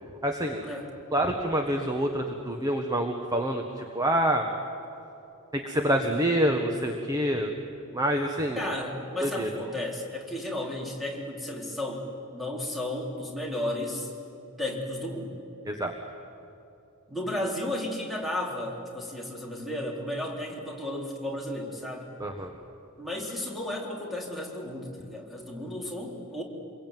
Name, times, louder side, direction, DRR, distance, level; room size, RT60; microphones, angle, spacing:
voice 1, 0.2-0.6 1.1-4.5 5.5-7.5 7.9-8.7 9.2-9.5 15.6-15.9 22.2-22.5, right 1 dB, 15° right, 3 dB, 1.4 m, -27 dB
voice 2, 8.6-14.1 14.6-15.3 17.1-22.1 23.0-26.4, left 1 dB, ahead, -2 dB, 4.0 m, -33 dB
27.0 x 22.0 x 9.3 m, 2.8 s
head